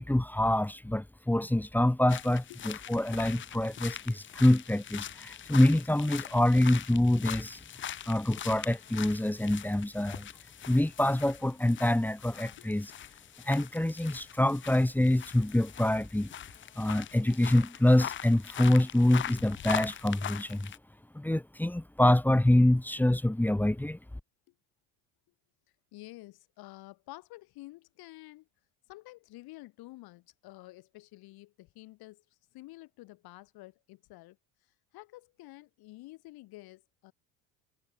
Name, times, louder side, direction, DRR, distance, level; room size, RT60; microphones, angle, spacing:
voice 1, 0.0-7.6 8.1-10.3 10.7-12.9 13.4-16.3 16.8-20.7 21.1-24.0, left 1 dB, 5° left, 1.2 m, -26 dB
sound 1, 2.1-20.8, left 10 dB, 30° left, 0.6 m, -42 dB
voice 2, 25.9-28.5 28.9-32.2 32.5-34.4 34.9-37.1, left 19 dB, 70° left, 3.7 m, -50 dB
supercardioid pair, 100°, 39 cm